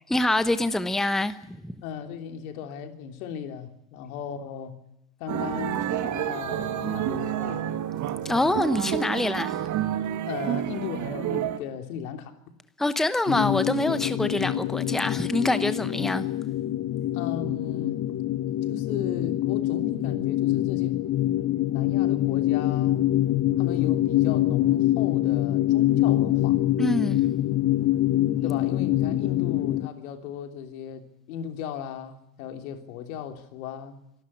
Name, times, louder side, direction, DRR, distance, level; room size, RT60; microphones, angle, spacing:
voice 1, 0.1-1.7 8.2-9.7 12.8-16.3 26.8-27.2, left 1 dB, ahead, 1.0 m, -25 dB
voice 2, 1.8-4.8 5.2-7.8 10.2-12.3 17.1-18.0 18.7-21.0 21.7-23.1 23.6-26.6 28.4-34.0, left 8 dB, 80° left, 3.3 m, -36 dB
sound 1, 5.3-11.6, right 11 dB, 45° right, 1.8 m, -29 dB
sound 2, 13.3-29.9, left 14 dB, 35° left, 0.9 m, -25 dB
25.5 x 12.5 x 9.9 m
supercardioid pair, 115°, 41 cm